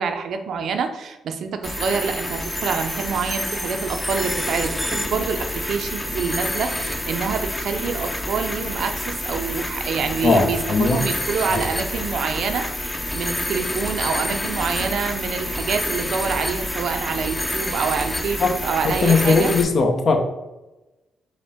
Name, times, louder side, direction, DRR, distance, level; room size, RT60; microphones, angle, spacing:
voice 1, 0.0-19.5, right 5 dB, 70° right, 7 dB, 0.4 m, -26 dB
sound 1, 1.6-19.6, left 1 dB, 10° left, 0.6 m, -28 dB
voice 2, 10.2-11.1 11.5-11.6 18.4-18.5 18.8-20.2, left 4 dB, 55° left, 4 dB, 0.6 m, -19 dB
5.1 x 2.1 x 3.5 m, 1.0 s
supercardioid pair, 50°, 0 cm